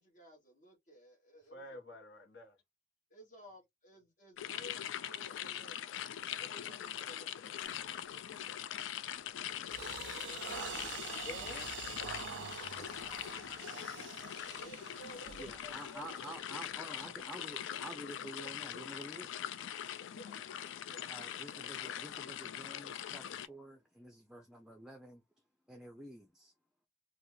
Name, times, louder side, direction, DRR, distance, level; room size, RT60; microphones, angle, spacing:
voice 1, 0.0-1.8 3.1-6.0 6.4-7.8 10.1-10.6 12.8-14.0 14.5-17.1 18.5-18.6 20.1-20.6 20.9-21.2 21.5-21.7, equal, 40° left, 0.9 m, -56 dB
voice 2, 1.5-2.5 10.7-11.7, left 2 dB, 65° left, 1.1 m, -50 dB
sound 1, 4.4-23.5, left 10 dB, 85° left, 0.3 m, -42 dB
sound 2, 7.6-7.8 8.3-8.6 9.1-17.2, right 9 dB, 75° right, 0.4 m, -47 dB
voice 3, 15.4-19.3 19.7-19.8 21.1-25.2 25.7-26.5, right 1 dB, 5° right, 0.4 m, -49 dB
2.4 x 2.4 x 3.0 m
head